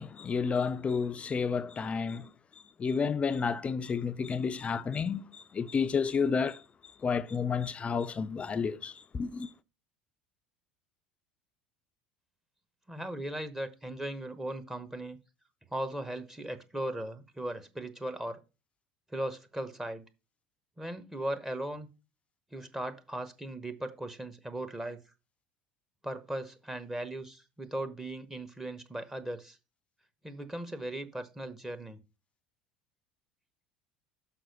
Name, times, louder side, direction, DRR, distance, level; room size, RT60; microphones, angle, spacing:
voice 1, 0.0-2.3 2.8-6.6 7.0-9.5, left 5 dB, 30° left, 0.5 m, -31 dB
voice 2, 12.9-15.2 15.7-18.4 19.1-20.1 20.8-21.9 22.5-25.0 26.0-29.6 30.2-32.0, right 1 dB, 10° right, 1.0 m, -38 dB
6.1 x 4.9 x 6.5 m
hypercardioid pair, 70°, 4 cm